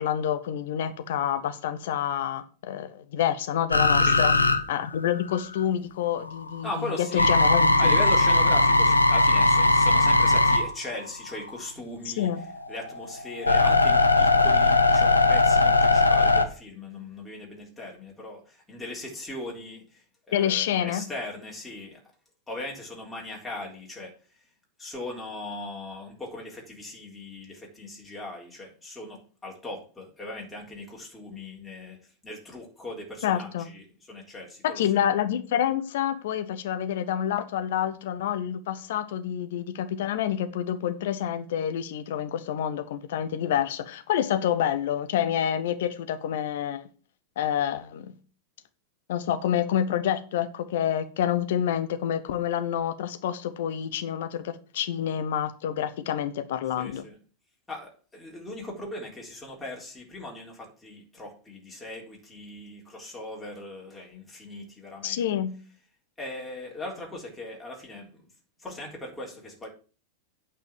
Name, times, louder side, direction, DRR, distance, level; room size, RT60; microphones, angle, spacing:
voice 1, 0.0-4.3 4.7-8.0 12.0-12.4 20.3-21.1 33.2-33.7 34.6-46.9 47.4-48.1 49.1-57.1 65.0-65.5, left 10 dB, 55° left, 1.1 m, -28 dB
sound 1, 3.7-5.6 6.1-11.7 12.2-16.4, left 2 dB, 80° left, 0.9 m, -20 dB
voice 2, 6.6-7.3 7.8-12.3 12.7-22.0 22.5-24.1 24.8-32.0 32.2-34.8 56.8-57.2 57.7-65.2 66.2-68.2 68.6-69.7, left 1 dB, 10° left, 3.7 m, -39 dB
9.1 x 4.8 x 7.4 m
figure-of-eight pair, 90°, 0 cm